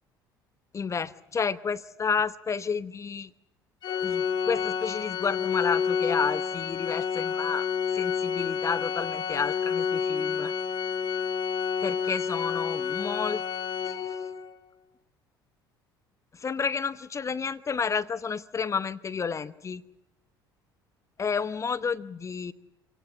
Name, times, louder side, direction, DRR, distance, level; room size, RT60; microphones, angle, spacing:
voice 1, 0.7-3.3 4.0-7.7 7.9-10.5 11.8-13.4 13.9-14.0 16.3-19.8 21.2-22.5, left 5 dB, 25° left, 13 dB, 0.9 m, -31 dB
Organ, 3.8-14.5, left 7 dB, 40° left, 1.8 m, -29 dB
26.5 x 18.0 x 8.5 m, 0.89 s
figure-of-eight pair, 60°, 12 cm